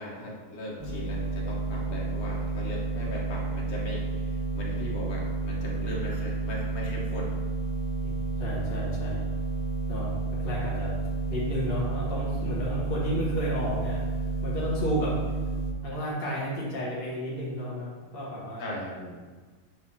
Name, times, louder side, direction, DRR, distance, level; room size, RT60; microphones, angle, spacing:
voice 1, 0.0-7.3 18.6-19.2, left 1 dB, 70° left, -4 dB, 1.7 m, -38 dB
sound 1, 0.8-15.7, right 4 dB, 65° right, 0.3 m, -31 dB
voice 2, 8.0-9.2 9.9-10.1 10.4-10.9 11.3-14.0 14.4-15.2 15.8-18.6, left 1 dB, 40° left, -6 dB, 1.2 m, -32 dB
7.6 x 2.6 x 5.4 m, 1.4 s
omnidirectional pair, 1.7 m